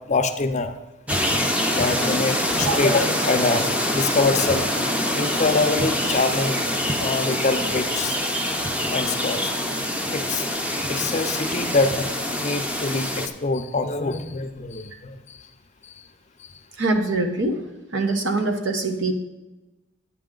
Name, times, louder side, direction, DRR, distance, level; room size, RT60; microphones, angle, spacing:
voice 1, 0.1-0.8 1.7-4.7 5.1-6.6 7.0-8.2 8.5-8.6 8.9-9.5 9.9-15.4 15.8-15.9 16.4-16.5, left 3 dB, 35° left, 7 dB, 0.5 m, -25 dB
sound 1, 1.1-13.3, left 1 dB, 5° right, 0.6 m, -25 dB
voice 2, 16.8-17.6 17.9-19.1, right 2 dB, 65° right, 5 dB, 1.1 m, -23 dB
10.5 x 8.6 x 3.8 m, 1.1 s
head